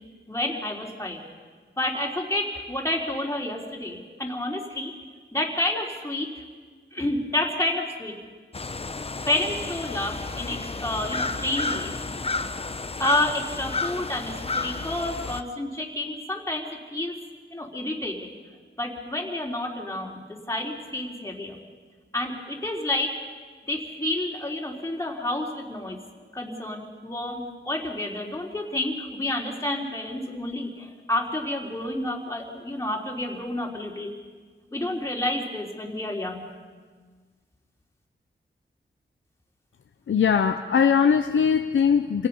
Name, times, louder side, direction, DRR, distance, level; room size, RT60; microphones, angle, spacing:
voice 1, 0.3-1.2 1.7-4.9 5.3-6.3 6.9-8.1 9.3-12.3 13.0-17.2 17.5-18.3 18.8-20.2 20.5-21.6 22.1-23.2 23.7-26.0 26.3-34.1 34.7-36.4, left 1 dB, 15° left, -1 dB, 3.6 m, -29 dB
sound 1, 8.5-15.4, left 3 dB, 30° left, 0.8 m, -31 dB
voice 2, 40.1-42.3, left 7 dB, 80° left, 8 dB, 0.7 m, -20 dB
28.0 x 17.5 x 5.5 m, 1.5 s
wide cardioid pair, 75°, 20 cm